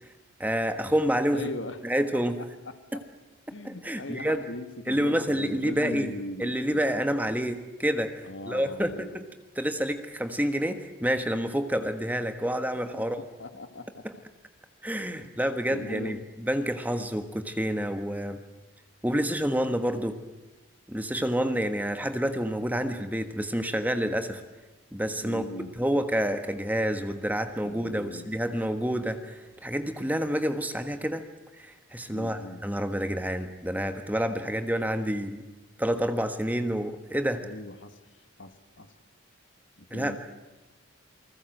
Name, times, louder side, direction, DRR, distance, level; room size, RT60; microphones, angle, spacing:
voice 1, 0.4-1.4 1.8-2.4 3.6-4.4 4.9-6.1 6.4-8.1 8.5-9.2 9.6-13.2 14.0-14.1 14.8-16.2 16.4-18.4 19.0-20.2 20.9-24.4 24.9-25.4 25.8-31.2 31.6-35.4 35.8-37.4 39.9-40.2, equal, 10° right, 8 dB, 1.4 m, -28 dB
voice 2, 1.3-1.8 2.7-3.0 3.5-6.9 8.2-9.2 12.9-14.0 15.0-15.4 15.7-16.3 25.2-25.8 27.6-28.3 32.1-32.6 37.4-38.0 38.4-38.9 39.8-40.2, left 1 dB, 60° left, 9 dB, 2.0 m, -39 dB
28.5 x 20.0 x 7.9 m, 1.1 s
head